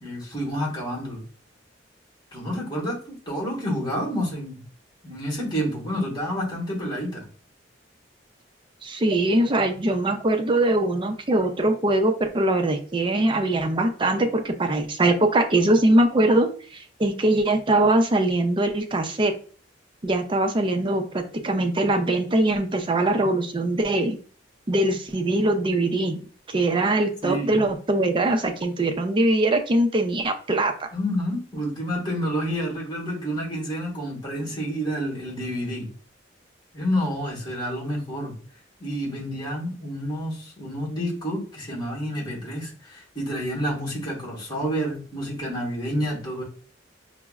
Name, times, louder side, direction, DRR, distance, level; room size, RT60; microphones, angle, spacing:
voice 1, 0.0-1.2 2.3-4.6 5.0-7.3 27.2-27.6 30.9-35.9 36.7-38.4 38.8-46.4, equal, 25° left, -3 dB, 1.4 m, -29 dB
voice 2, 8.8-19.3 20.0-24.2 24.7-30.7, right 1 dB, 25° right, 5 dB, 0.4 m, -22 dB
5.6 x 2.0 x 2.3 m, 0.42 s
head